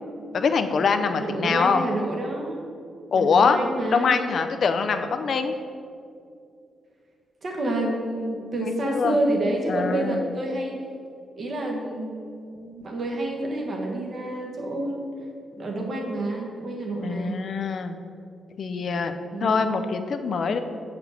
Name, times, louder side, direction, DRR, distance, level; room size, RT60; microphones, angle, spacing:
voice 1, 0.3-1.8 3.1-3.6 3.9-5.6 8.6-9.2 9.7-10.3 17.0-18.0 18.6-19.1 19.4-20.6, left 5 dB, 50° left, 8 dB, 0.5 m, -23 dB
voice 2, 1.1-2.7 3.1-4.2 7.4-10.8 11.4-15.1 15.6-17.4 19.3-19.7, right 1 dB, 40° right, 0 dB, 1.3 m, -28 dB
8.2 x 5.0 x 6.4 m, 2.4 s
wide cardioid pair, 160°, 0 cm